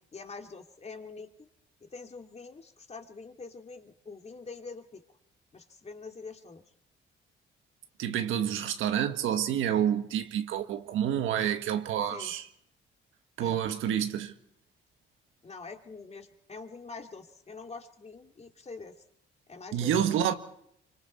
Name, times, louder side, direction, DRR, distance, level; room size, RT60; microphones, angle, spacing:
voice 1, 0.0-1.5 1.8-5.0 5.5-6.6 12.1-12.3 13.4-13.6 15.4-19.0 19.5-19.9, left 4 dB, 35° left, 2.6 m, -45 dB
voice 2, 8.0-12.4 13.4-14.3 19.7-20.3, right 9 dB, 85° right, 1.7 m, -28 dB
26.0 x 25.0 x 4.2 m
cardioid pair, 90°, 20 cm